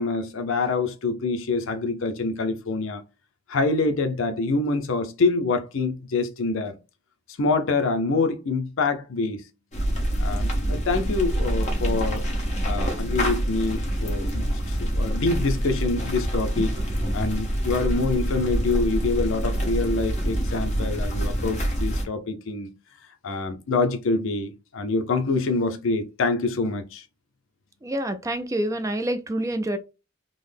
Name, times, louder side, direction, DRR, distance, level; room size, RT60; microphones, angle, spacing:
voice 1, 0.0-3.0 3.5-6.8 7.4-9.4 10.2-12.3 12.6-16.8 17.1-22.7 23.2-27.0, left 3 dB, 70° left, 0.6 m, -26 dB
sound 1, 9.7-22.1, equal, 35° left, 1.1 m, -26 dB
voice 2, 27.8-29.8, right 1 dB, 15° right, 0.3 m, -27 dB
3.8 x 2.1 x 3.3 m
head